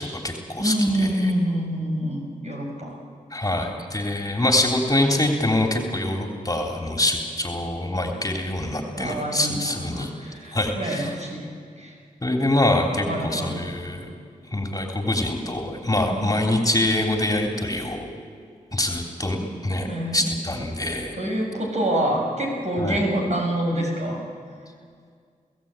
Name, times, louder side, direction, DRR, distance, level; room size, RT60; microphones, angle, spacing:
voice 1, 0.0-1.3 3.3-10.1 10.5-11.1 12.2-14.1 14.5-18.1 18.7-19.4 19.6-21.2 22.8-23.0, left 1 dB, 25° left, 2 dB, 3.2 m, -25 dB
voice 2, 0.6-3.0 9.0-11.5 11.8-11.9 13.1-13.7 16.1-16.3 19.9-20.3 21.1-24.2, right 1 dB, 50° right, 0 dB, 6.4 m, -26 dB
29.5 x 16.0 x 8.9 m, 2.1 s
cardioid pair, 50°, 15 cm